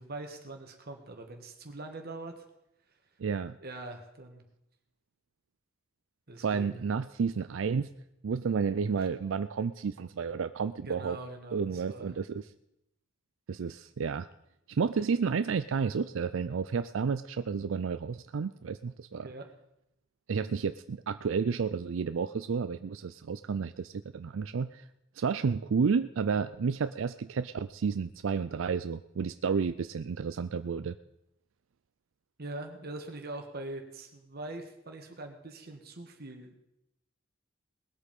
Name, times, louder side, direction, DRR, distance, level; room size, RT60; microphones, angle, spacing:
voice 1, 0.0-2.4 3.6-4.4 6.3-6.8 10.8-12.1 19.2-19.5 32.4-36.6, right 2 dB, 50° right, 4 dB, 1.6 m, -43 dB
voice 2, 3.2-3.6 6.4-7.9 8.2-11.2 11.5-12.5 13.5-14.3 14.7-19.3 20.3-24.9 25.2-30.9, right 5 dB, 75° right, 12 dB, 0.4 m, -31 dB
20.0 x 8.2 x 5.3 m, 0.83 s
head